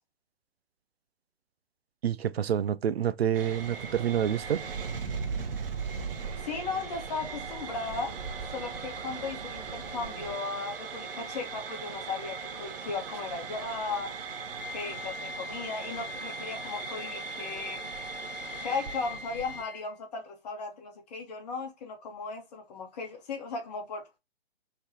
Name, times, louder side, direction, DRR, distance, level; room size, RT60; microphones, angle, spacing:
voice 1, 2.0-4.6, right 9 dB, 75° right, 0.5 m, -28 dB
sound 1, 3.3-19.6, right 5 dB, 60° right, 1.0 m, -39 dB
sound 2, 3.5-10.4, right 5 dB, 35° right, 0.9 m, -43 dB
voice 2, 6.4-8.2 8.5-14.2 14.7-17.8 18.6-24.2, left 4 dB, 40° left, 1.4 m, -36 dB
Wind instrument woodwind instrument, 14.6-19.9, left 5 dB, 65° left, 0.4 m, -42 dB
4.9 x 3.3 x 2.8 m
figure-of-eight pair, 140°, 31 cm